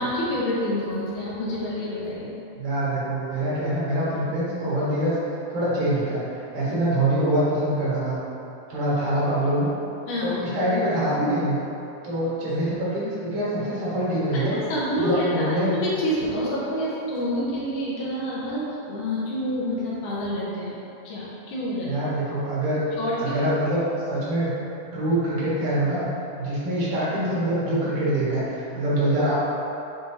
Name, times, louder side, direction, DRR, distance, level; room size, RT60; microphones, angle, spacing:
voice 1, 0.0-2.4 10.1-10.4 14.3-15.3 15.6-20.8 21.0-21.9 23.0-23.4, equal, 70° left, -8 dB, 2.5 m, -28 dB
voice 2, 2.5-5.1 5.5-8.2 8.7-9.7 10.2-11.6 12.0-14.5 15.0-15.7 21.8-22.8 23.2-23.8 24.1-24.5 24.9-26.1 26.4-29.4, right 1 dB, 75° right, -9 dB, 3.1 m, -24 dB
7.7 x 4.4 x 2.7 m, 2.9 s
omnidirectional pair, 3.7 m